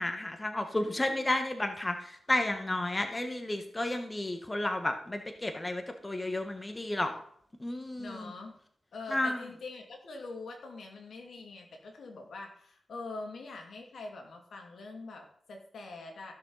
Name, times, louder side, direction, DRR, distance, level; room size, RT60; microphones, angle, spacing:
voice 1, 0.0-7.2 7.6-8.3 9.1-9.4, left 1 dB, 25° left, 6 dB, 1.3 m, -32 dB
voice 2, 8.0-8.6 8.9-16.3, left 3 dB, 75° left, 2 dB, 2.3 m, -44 dB
15.0 x 6.4 x 4.0 m, 0.65 s
cardioid pair, 55°, 0 cm